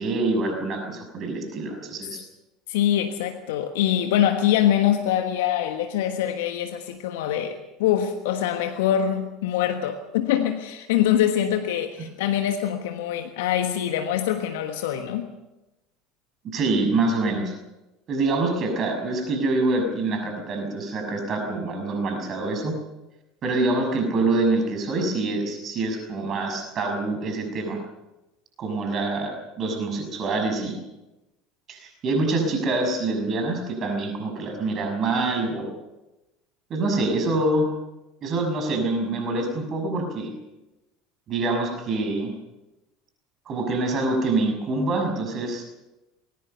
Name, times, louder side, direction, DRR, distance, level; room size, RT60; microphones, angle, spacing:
voice 1, 0.0-2.2 16.4-17.5 18.1-22.7 23.4-27.8 28.6-30.8 31.7-35.7 36.7-37.7 38.2-40.3 41.3-42.3 43.5-45.6, right 2 dB, 40° right, 5 dB, 6.1 m, -25 dB
voice 2, 2.7-15.3, left 10 dB, 65° left, 7 dB, 1.3 m, -24 dB
21.0 x 19.0 x 6.9 m, 0.99 s
figure-of-eight pair, 70°, 0 cm